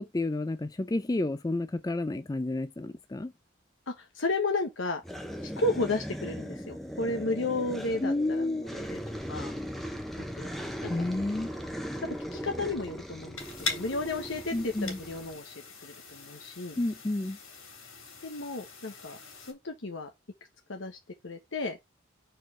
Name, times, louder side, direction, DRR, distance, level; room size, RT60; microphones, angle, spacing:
voice 1, 0.0-3.3 8.0-8.7 10.9-11.5 14.5-15.0 16.8-17.4, left 2 dB, 20° left, 0.4 m, -30 dB
voice 2, 3.9-5.0 5.4-9.0 9.3-9.5 10.4-10.5 10.8-11.1 12.0-15.5 15.8-16.8 18.2-19.2 19.5-20.1 20.7-21.8, left 2 dB, 70° left, 1.1 m, -33 dB
sound 1, 5.0-15.4, equal, ahead, 0.8 m, -38 dB
sound 2, 13.4-19.5, left 4 dB, 90° left, 3.2 m, -41 dB
4.6 x 4.5 x 6.0 m
head